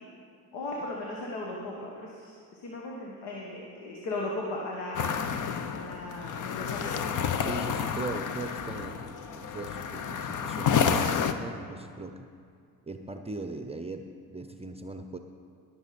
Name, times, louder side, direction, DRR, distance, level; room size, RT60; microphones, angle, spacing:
voice 1, 0.5-5.2 5.7-6.9, left 2 dB, 75° left, -2 dB, 1.6 m, -37 dB
sound 1, 4.9-11.3, left 7 dB, 45° left, 0.8 m, -30 dB
voice 2, 7.4-12.3 12.9-15.2, right 2 dB, 15° right, 6 dB, 0.7 m, -39 dB
19.5 x 7.0 x 4.2 m, 2.3 s
supercardioid pair, 70°, 41 cm